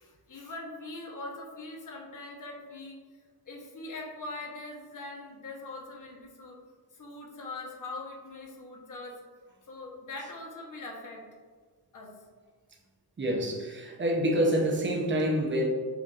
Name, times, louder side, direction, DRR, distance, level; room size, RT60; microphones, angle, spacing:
voice 1, 0.0-3.2 3.5-6.6 6.9-9.2 9.6-11.2 11.9-12.1, left 2 dB, 50° left, -1 dB, 1.1 m, -42 dB
voice 2, 13.2-15.7, equal, 30° right, 0 dB, 0.8 m, -27 dB
6.9 x 2.6 x 2.5 m, 1.5 s
cardioid pair, 95°, 40 cm